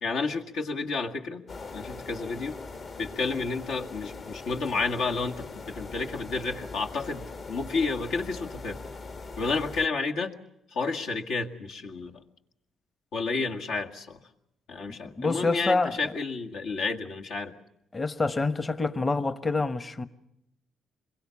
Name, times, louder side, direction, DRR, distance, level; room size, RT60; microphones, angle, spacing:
voice 1, 0.0-1.4 1.7-2.6 3.0-8.8 9.4-10.3 10.7-12.2 13.1-14.2 14.7-17.5, left 4 dB, 80° left, 2.0 m, -31 dB
sound 1, 1.5-9.9, left 3 dB, 50° left, 1.8 m, -41 dB
voice 2, 15.0-16.1 17.9-20.0, left 3 dB, 30° left, 1.2 m, -27 dB
27.0 x 22.0 x 7.1 m
cardioid pair, 90°, 0 cm